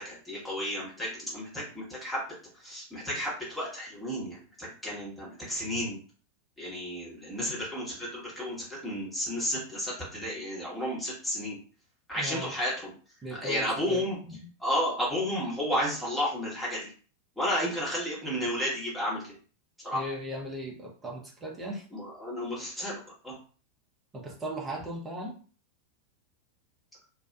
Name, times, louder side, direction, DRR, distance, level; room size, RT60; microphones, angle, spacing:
voice 1, 0.0-2.2 2.6-6.0 6.6-8.6 8.8-11.6 12.1-12.9 13.4-14.2 14.6-16.9 17.4-19.2 19.8-20.0 21.9-23.0 23.2-23.3, equal, 5° left, -7 dB, 1.0 m, -32 dB
voice 2, 12.2-12.5 13.2-14.5 19.9-21.8 24.1-25.4, equal, 15° right, -1 dB, 0.7 m, -37 dB
2.6 x 2.2 x 2.2 m, 0.40 s
figure-of-eight pair, 90°, 0 cm